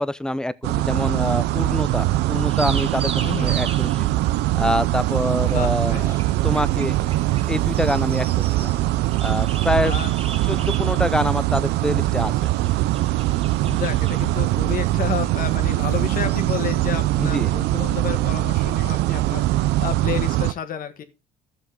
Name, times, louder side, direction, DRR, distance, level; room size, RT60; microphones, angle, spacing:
voice 1, 0.0-4.1 4.5-6.1 6.4-7.0 7.5-8.8 9.2-10.0 10.5-12.3 17.2-17.5, left 1 dB, 5° left, 0.6 m, -25 dB
sound 1, 0.6-20.5, right 16 dB, 85° right, 0.6 m, -22 dB
sound 2, 2.5-17.0, right 5 dB, 35° right, 1.4 m, -39 dB
voice 2, 3.2-3.6 5.4-6.2 9.8-10.1 10.4-10.6 13.6-21.0, left 9 dB, 55° left, 1.6 m, -31 dB
13.0 x 7.3 x 3.7 m
cardioid pair, 110°, 17 cm